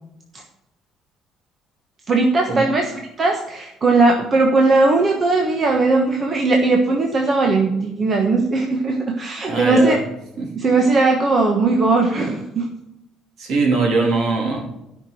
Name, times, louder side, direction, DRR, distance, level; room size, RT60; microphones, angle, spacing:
voice 1, 2.1-10.0 10.6-12.7, right 3 dB, 25° right, 2 dB, 1.2 m, -18 dB
voice 2, 9.5-10.0 10.4-10.5 13.4-14.6, right 2 dB, 55° right, 0 dB, 3.3 m, -20 dB
13.5 x 5.9 x 7.8 m, 0.88 s
cardioid pair, 170°, 0 cm